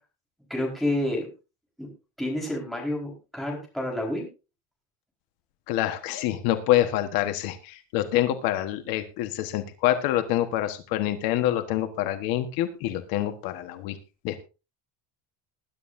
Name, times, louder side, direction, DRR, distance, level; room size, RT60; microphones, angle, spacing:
voice 1, 0.5-1.3 1.8-1.9 2.2-4.3, left 1 dB, ahead, -2 dB, 4.5 m, -29 dB
voice 2, 5.7-14.0 14.2-14.4, left 13 dB, 65° left, 8 dB, 1.4 m, -26 dB
20.5 x 11.0 x 2.6 m, 0.30 s
cardioid pair, 180°, 38 cm